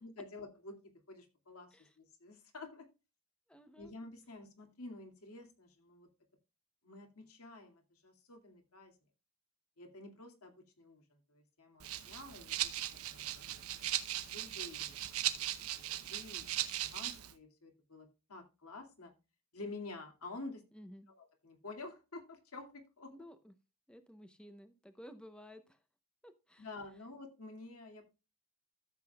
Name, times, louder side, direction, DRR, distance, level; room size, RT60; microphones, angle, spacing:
voice 1, 0.0-1.7 2.0-2.9 3.8-6.1 6.8-8.9 9.8-13.7 14.2-19.1 19.5-20.6 21.1-23.2 26.6-28.1, left 2 dB, 90° left, 4 dB, 2.3 m, -50 dB
voice 2, 3.5-3.9 20.7-21.1 23.1-23.5 23.9-25.8 26.2-26.7, equal, 5° left, 9 dB, 0.8 m, -54 dB
Rattle (instrument), 11.8-17.3, right 13 dB, 80° right, 0.8 m, -38 dB
14.0 x 7.4 x 2.3 m, 0.29 s
head